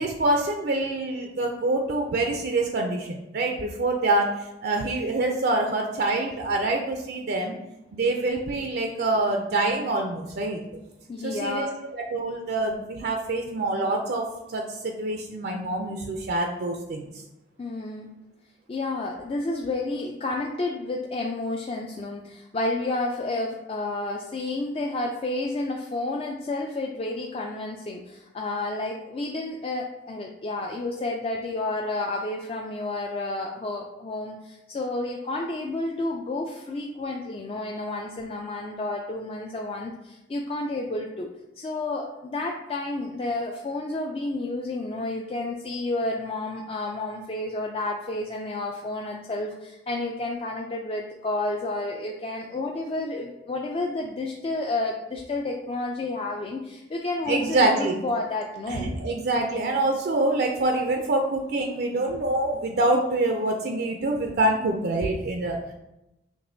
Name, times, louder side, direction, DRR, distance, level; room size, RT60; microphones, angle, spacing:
voice 1, 0.0-7.5 7.9-10.6 11.2-11.7 11.9-17.1 57.3-58.0 58.7-65.6, right 2 dB, 55° right, 2 dB, 0.4 m, -26 dB
voice 2, 11.1-11.7 17.6-18.1 18.7-41.3 41.6-58.9, left 2 dB, 30° left, 0 dB, 0.3 m, -30 dB
6.0 x 3.0 x 2.6 m, 0.92 s
head